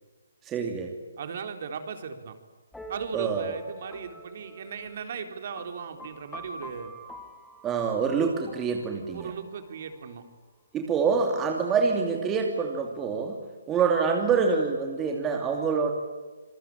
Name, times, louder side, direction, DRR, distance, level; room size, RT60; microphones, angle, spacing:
voice 1, 0.4-1.0 3.1-3.6 7.6-9.3 10.7-13.4 13.7-15.9, right 5 dB, 15° right, 2 dB, 2.8 m, -26 dB
voice 2, 1.2-2.3 2.9-6.9 9.1-10.2, right 6 dB, 50° right, 7 dB, 3.9 m, -37 dB
sound 1, 2.7-10.3, right 1 dB, 5° left, 3.0 m, -46 dB
27.5 x 22.5 x 8.7 m, 1.3 s
hypercardioid pair, 155°, 0 cm